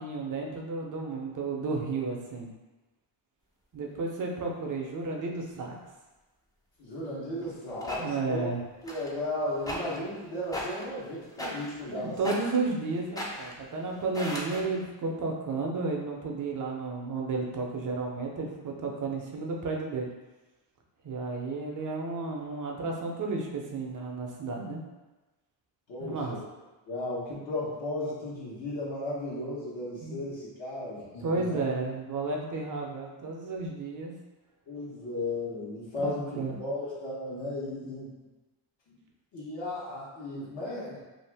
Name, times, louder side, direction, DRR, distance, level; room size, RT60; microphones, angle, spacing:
voice 1, 0.0-2.5 3.7-5.8 8.0-8.6 11.9-20.1 21.0-24.8 26.0-26.3 30.0-30.2 31.2-34.1 36.0-36.6, right 3 dB, 40° right, 0 dB, 0.6 m, -32 dB
voice 2, 6.8-8.5 8.8-12.2 25.9-26.4 26.9-31.7 34.7-38.1 38.9-39.0 39.3-41.0, left 1 dB, 60° left, -8 dB, 1.2 m, -35 dB
sound 1, 7.4-8.0 8.8-9.2 9.6-10.1 10.4-10.9 11.3-11.9 12.2-12.7 13.0-13.6 14.0-14.6, equal, 10° left, 0.4 m, -37 dB
2.7 x 2.4 x 3.3 m, 1.1 s
cardioid pair, 95°, 47 cm